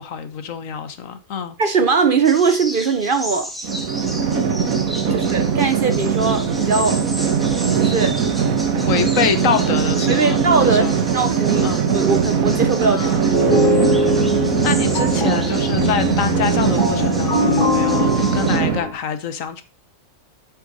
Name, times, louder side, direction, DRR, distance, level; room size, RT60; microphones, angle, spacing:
voice 1, 0.0-1.6 5.1-5.3 8.9-10.9 11.6-11.8 12.8-14.0 14.6-19.6, left 7 dB, 70° left, 1.4 m, -26 dB
voice 2, 1.6-3.5 5.1-7.0 7.8-8.2 10.1-13.0 13.7-13.9, right 4 dB, 50° right, 0.8 m, -20 dB
sound 1, 2.2-18.6, equal, ahead, 1.1 m, -35 dB
sound 2, 3.6-18.8, right 7 dB, 80° right, 1.5 m, -20 dB
sound 3, 13.3-18.9, left 1 dB, 40° left, 2.2 m, -21 dB
7.6 x 6.7 x 4.1 m
omnidirectional pair, 1.4 m